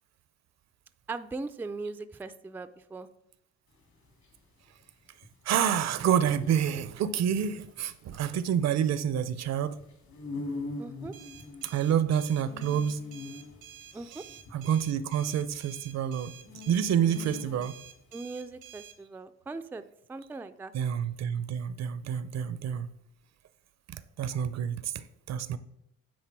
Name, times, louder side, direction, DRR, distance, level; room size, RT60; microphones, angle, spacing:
voice 1, 1.1-3.1 10.8-11.1 13.9-14.2 18.1-19.8 20.1-20.7, right 3 dB, 5° right, 11 dB, 0.3 m, -39 dB
sound 1, 3.7-17.9, left 3 dB, 65° left, 2.2 m, -43 dB
voice 2, 5.5-9.8 11.7-13.0 14.5-16.3 16.7-17.7 20.7-22.9 24.2-24.9 25.3-25.6, right 9 dB, 60° right, 14 dB, 0.6 m, -28 dB
sound 2, 11.1-19.0, right 9 dB, 90° right, 1.0 m, -50 dB
9.5 x 3.9 x 4.6 m, 0.81 s
cardioid pair, 90°, 30 cm